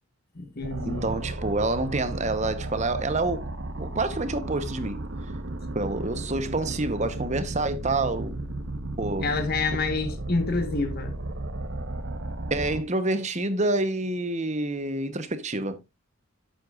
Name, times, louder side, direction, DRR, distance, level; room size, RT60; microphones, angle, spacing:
voice 1, 0.3-1.1 9.2-11.2, left 3 dB, 45° left, 1.3 m, -28 dB
sound 1, 0.6-12.8, right 2 dB, 55° right, 1.2 m, -34 dB
voice 2, 0.9-3.4 3.8-5.0 5.7-8.4 9.0-9.3 12.5-15.8, right 2 dB, 35° right, 1.0 m, -27 dB
11.5 x 7.9 x 2.5 m
head